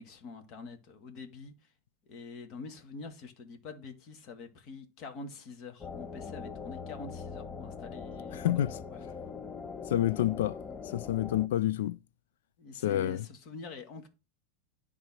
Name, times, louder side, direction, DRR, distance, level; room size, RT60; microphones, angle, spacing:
voice 1, 0.0-1.5 2.1-8.6 8.9-9.0 12.6-14.1, left 4 dB, 50° left, 2.1 m, -46 dB
sound 1, 5.8-11.5, left 5 dB, 25° left, 0.9 m, -42 dB
voice 2, 8.3-8.8 9.9-10.6 10.8-12.0 12.8-13.2, left 12 dB, 70° left, 0.4 m, -28 dB
10.5 x 3.7 x 6.0 m
hypercardioid pair, 100°, 0 cm